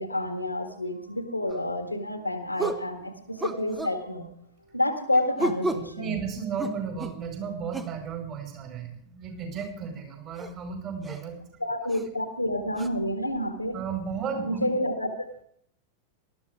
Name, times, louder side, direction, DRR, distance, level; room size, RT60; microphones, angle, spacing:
voice 1, 0.0-4.3 4.7-6.2 11.6-13.8 14.4-15.1, left 1 dB, 85° left, 7 dB, 1.8 m, -29 dB
sound 1, 1.5-1.7 2.6-2.9 3.4-4.0 5.4-5.9 6.6-7.2 7.7-8.0 9.6-9.7 10.4-10.5 11.0-11.2 11.9-12.1 12.8-12.9, right 2 dB, 10° right, 1.0 m, -32 dB
voice 2, 6.0-11.4 13.7-14.6, right 6 dB, 35° right, 3 dB, 5.0 m, -34 dB
19.0 x 13.0 x 3.5 m, 0.68 s
figure-of-eight pair, 90°, 0 cm